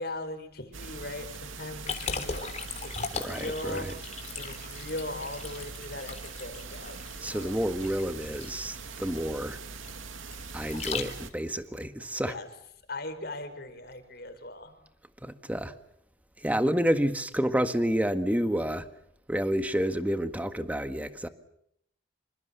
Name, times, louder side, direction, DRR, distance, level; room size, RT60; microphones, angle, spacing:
voice 1, 0.0-7.5 12.2-12.5 12.9-14.7, left 2 dB, 50° left, 4.9 m, -39 dB
sound 1, 0.7-11.3, right 4 dB, 85° right, 2.6 m, -42 dB
Liquid, 1.9-11.5, left 5 dB, 35° left, 3.6 m, -38 dB
voice 2, 3.1-3.9 7.2-9.6 10.5-12.3 15.2-15.7 16.4-18.9 19.3-21.3, equal, 10° right, 1.6 m, -29 dB
27.5 x 25.5 x 7.0 m
head